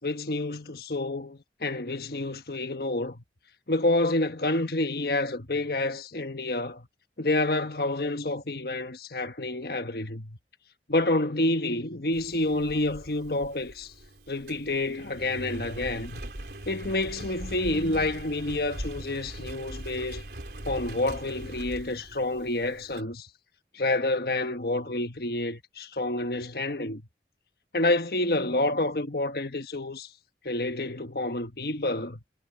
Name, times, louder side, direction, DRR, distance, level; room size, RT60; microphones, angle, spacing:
voice 1, 0.0-3.2 3.7-6.9 7.2-10.4 10.9-13.9 14.3-16.2 16.7-20.2 20.6-23.3 23.7-27.0 27.7-30.1 30.4-32.2, left 2 dB, 60° left, 1.3 m, -28 dB
Engine, 12.1-23.0, right 1 dB, 70° right, 3.4 m, -41 dB
head